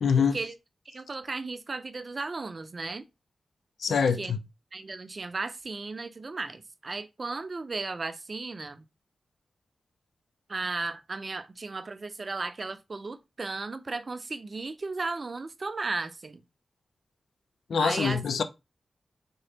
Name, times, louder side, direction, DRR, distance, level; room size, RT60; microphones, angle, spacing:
voice 1, 0.0-0.4 3.8-4.4 17.7-18.4, left 6 dB, 85° left, 0.3 m, -24 dB
voice 2, 0.9-3.1 3.9-4.3 4.7-8.8 10.5-16.4 17.8-18.2, right 3 dB, 50° right, 0.5 m, -35 dB
3.8 x 2.0 x 3.4 m
cardioid pair, 55°, 0 cm